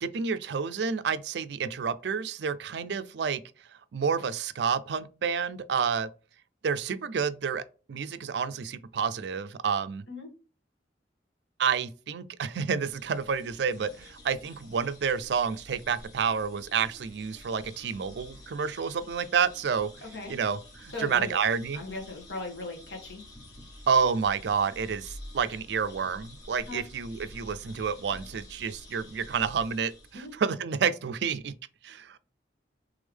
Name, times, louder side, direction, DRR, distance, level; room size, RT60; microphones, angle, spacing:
voice 1, 0.0-3.4 3.9-6.1 6.6-10.0 11.6-19.9 20.3-21.8 23.9-31.5 31.8-32.2, right 6 dB, 65° right, 0.4 m, -29 dB
sound 1, 12.7-30.5, left 1 dB, 20° left, 1.5 m, -49 dB
voice 2, 20.0-20.3 20.9-21.4 21.7-23.2 26.7-26.8 30.1-30.3, left 2 dB, 85° left, 1.7 m, -38 dB
3.5 x 3.4 x 3.4 m
head